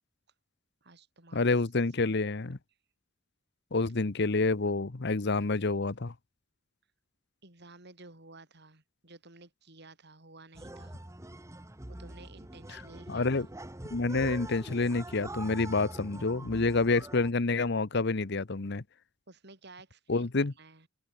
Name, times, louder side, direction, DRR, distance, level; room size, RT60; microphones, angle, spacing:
voice 1, 0.8-1.5 2.0-2.3 7.4-11.0 11.9-13.3 19.3-20.9, right 2 dB, 55° right, 4.7 m, -53 dB
voice 2, 1.3-2.6 3.7-6.1 12.7-12.8 13.1-13.5 13.9-18.8 20.1-20.5, left 3 dB, 55° left, 1.0 m, -28 dB
sound 1, 10.5-17.3, right 1 dB, 15° right, 1.3 m, -44 dB
open air
head